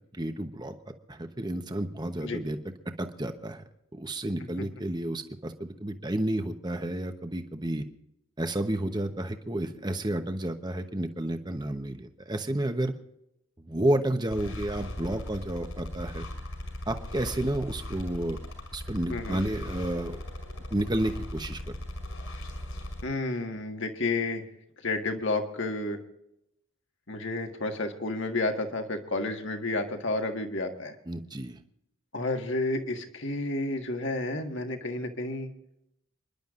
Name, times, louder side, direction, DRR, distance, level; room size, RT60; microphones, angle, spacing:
voice 1, 0.1-0.7 1.1-2.6 3.0-3.6 3.9-7.8 8.4-12.9 13.7-16.3 16.9-18.4 18.7-20.2 20.7-21.6 31.1-31.6, right 1 dB, 20° right, 7 dB, 1.0 m, -31 dB
sound 1, 14.3-23.0, left 1 dB, 70° left, 4.8 m, -38 dB
voice 2, 19.1-19.4 23.0-24.4 24.8-26.0 27.1-30.9 32.1-35.5, left 2 dB, 55° left, 4 dB, 1.7 m, -31 dB
29.5 x 11.5 x 2.5 m, 0.82 s
head